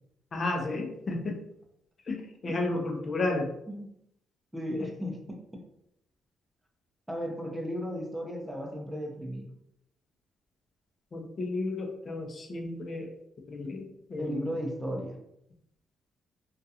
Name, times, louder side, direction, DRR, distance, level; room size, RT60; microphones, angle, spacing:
voice 1, 0.3-1.4 2.1-2.2 2.4-3.5 4.7-4.9 11.1-13.1 13.5-14.5, left 2 dB, 45° left, 3 dB, 0.5 m, -32 dB
voice 2, 4.5-5.6 7.1-9.5 14.2-15.2, equal, 5° right, 1 dB, 0.6 m, -35 dB
2.4 x 2.2 x 2.7 m, 0.78 s
cardioid pair, 90°, 0 cm